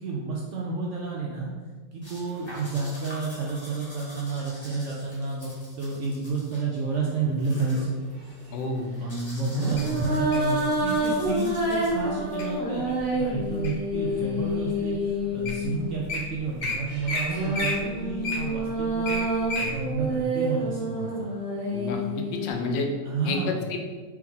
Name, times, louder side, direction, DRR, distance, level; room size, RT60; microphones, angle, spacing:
voice 1, 0.0-1.5 1.9-7.9 9.0-19.2 19.6-21.3 22.1-22.2 23.0-23.7, right 4 dB, 85° right, -3 dB, 0.6 m, -30 dB
sound 1, 2.0-12.2, equal, 20° left, 0.9 m, -46 dB
sound 2, 7.7-8.0 9.4-16.0 16.9-22.5, right 1 dB, 50° right, 1.6 m, -28 dB
voice 2, 8.5-8.9 21.7-22.0 22.3-22.9 23.2-23.8, left 3 dB, 80° left, 3 dB, 1.3 m, -29 dB
Wild animals, 9.8-10.5 11.2-11.5 12.0-12.4 13.0-13.9 14.5-14.6 15.2-15.3 15.4-15.6 15.9-16.2 16.6-16.7 17.1-17.2 17.5-19.7 20.2-20.3, left 2 dB, 55° left, 1.1 m, -31 dB
4.6 x 3.1 x 3.5 m, 1.4 s
omnidirectional pair, 2.0 m